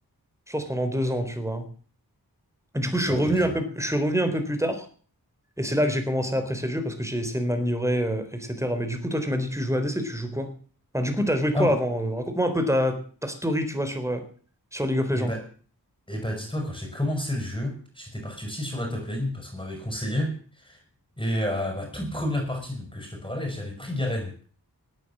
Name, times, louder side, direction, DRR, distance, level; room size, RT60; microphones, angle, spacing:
voice 1, 0.5-1.7 2.7-4.9 5.6-10.5 10.9-14.3 14.7-15.3, equal, 5° right, 7 dB, 3.9 m, -26 dB
voice 2, 3.1-3.5 11.6-11.8 15.1-15.4 16.1-20.8 21.2-24.5, left 1 dB, 15° left, 3 dB, 6.0 m, -30 dB
17.0 x 9.4 x 7.5 m, 0.44 s
wide cardioid pair, 50°, 39 cm